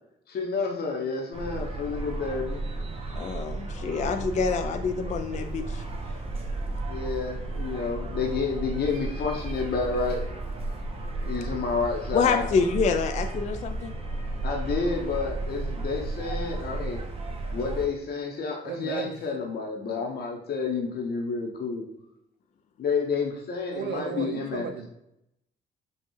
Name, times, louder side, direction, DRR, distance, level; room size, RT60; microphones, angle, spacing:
voice 1, 0.3-2.6 6.9-10.2 11.3-12.5 14.4-17.0 17.5-21.8 22.8-24.7, left 4 dB, 55° left, -1 dB, 0.8 m, -30 dB
sound 1, 1.3-17.9, right 2 dB, 30° right, 0.8 m, -33 dB
voice 2, 3.2-5.8 12.1-13.9, left 5 dB, 35° left, 6 dB, 0.4 m, -26 dB
voice 3, 18.6-19.1 23.7-24.9, right 6 dB, 60° right, 6 dB, 0.6 m, -34 dB
5.3 x 2.3 x 3.1 m, 0.81 s
cardioid pair, 90°, 20 cm